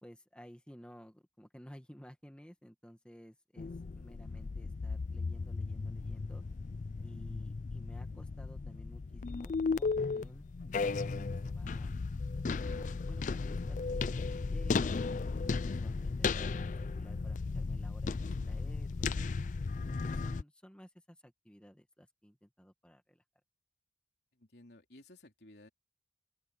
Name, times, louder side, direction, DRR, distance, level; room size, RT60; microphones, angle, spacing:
voice 1, 0.0-6.4 7.0-12.0 12.5-19.2 19.7-23.2, equal, 5° left, 1.7 m, -55 dB
sound 1, 3.6-20.4, left 4 dB, 45° left, 0.4 m, -35 dB
voice 2, 24.3-25.7, left 1 dB, 65° left, 3.6 m, -56 dB
head